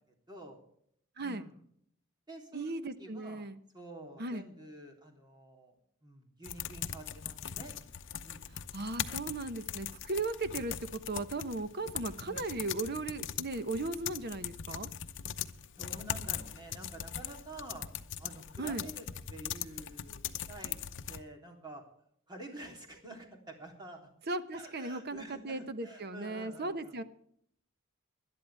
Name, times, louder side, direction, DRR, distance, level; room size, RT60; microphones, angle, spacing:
voice 1, 0.3-0.6 1.2-1.6 2.3-2.7 3.0-3.5 3.7-7.7 8.2-8.5 12.2-12.5 15.8-17.9 18.2-20.8 21.1-21.8 22.3-24.1 24.5-27.0, right 1 dB, 20° right, 1 dB, 3.4 m, -49 dB
voice 2, 1.2-1.5 2.5-3.6 4.2-4.4 8.7-14.9 18.6-18.9 24.3-27.0, right 2 dB, 50° right, 11 dB, 1.0 m, -37 dB
sound 1, 6.4-21.2, left 9 dB, 60° left, 0.8 m, -40 dB
20.5 x 11.5 x 3.5 m, 0.66 s
head